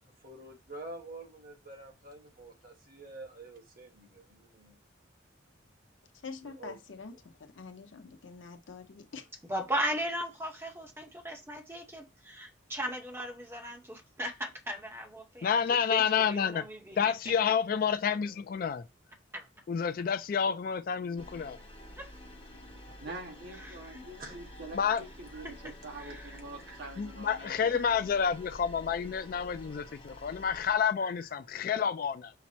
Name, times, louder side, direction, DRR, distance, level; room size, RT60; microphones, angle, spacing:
voice 1, 0.2-4.8 6.4-6.8 7.1-7.3 20.4-20.6 24.2-24.6, right 2 dB, 45° right, 1.2 m, -48 dB
voice 2, 6.2-9.3, left 4 dB, 90° left, 0.8 m, -46 dB
voice 3, 9.4-17.1 19.3-19.5 22.0-22.1 23.6-24.0 25.4-25.5 26.0-26.4 27.7-27.8, equal, 10° right, 0.8 m, -37 dB
voice 4, 15.4-16.6 17.0-18.8 19.7-21.6 24.7-25.0 27.0-32.3, left 7 dB, 50° left, 0.3 m, -29 dB
sound 1, 21.2-30.8, left 1 dB, 30° left, 0.9 m, -50 dB
voice 5, 22.7-27.8, right 2 dB, 60° right, 1.4 m, -45 dB
5.8 x 2.0 x 4.1 m
head